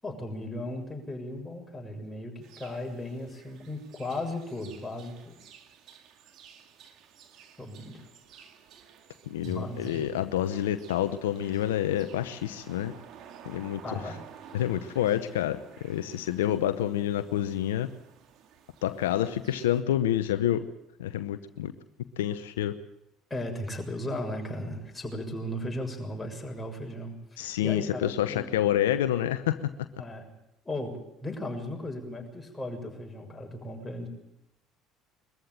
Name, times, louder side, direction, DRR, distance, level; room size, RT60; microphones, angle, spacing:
voice 1, 0.0-5.3 7.6-8.1 9.4-10.0 13.8-14.2 23.3-28.5 30.0-30.3 30.6-34.1, left 1 dB, 15° left, 1 dB, 6.9 m, -36 dB
sound 1, 2.4-19.8, right 8 dB, 60° right, 2.3 m, -53 dB
voice 2, 9.3-12.9 13.4-14.1 14.5-17.9 18.8-20.6 21.0-21.7 22.2-22.7 27.4-29.7, left 11 dB, 85° left, 11 dB, 0.8 m, -28 dB
22.5 x 14.5 x 8.9 m, 0.84 s
hypercardioid pair, 65°, 0 cm